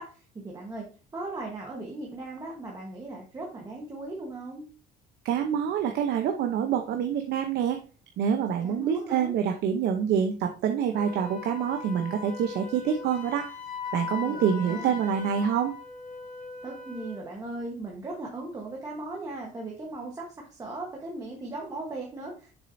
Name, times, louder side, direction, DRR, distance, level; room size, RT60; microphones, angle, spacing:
voice 1, 0.0-4.7 8.6-9.3 14.2-15.0 16.6-22.5, right 2 dB, 20° right, -2 dB, 1.2 m, -38 dB
voice 2, 5.2-7.8 8.2-13.5 13.9-15.7, right 8 dB, 60° right, 4 dB, 0.8 m, -26 dB
Wind instrument woodwind instrument, 10.9-17.3, left 5 dB, 45° left, 2.0 m, -39 dB
7.3 x 6.4 x 2.6 m, 0.35 s
cardioid pair, 170°, 19 cm